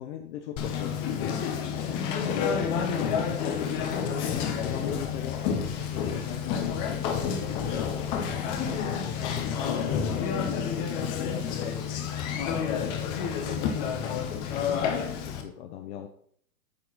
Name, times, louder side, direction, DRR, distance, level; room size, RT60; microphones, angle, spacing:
voice 1, 0.0-1.6 1.9-3.7 4.3-5.4 5.7-8.3 8.8-10.3 10.7-12.3 13.4-16.1, left 10 dB, 50° left, 4 dB, 1.0 m, -39 dB
Conversation, 0.6-15.4, left 7 dB, 15° left, 0.4 m, -29 dB
8.5 x 4.6 x 5.6 m, 0.62 s
hypercardioid pair, 130°, 45 cm